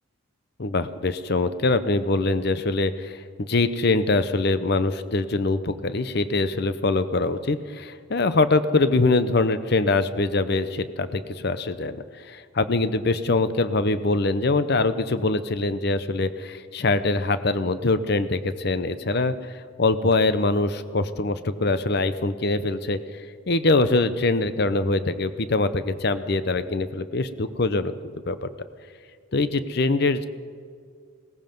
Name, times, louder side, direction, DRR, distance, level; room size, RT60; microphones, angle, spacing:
voice 1, 0.6-19.5 19.8-27.9 28.3-28.5 29.3-30.3, left 3 dB, 50° left, 12 dB, 0.7 m, -23 dB
17.5 x 15.0 x 5.3 m, 2.2 s
head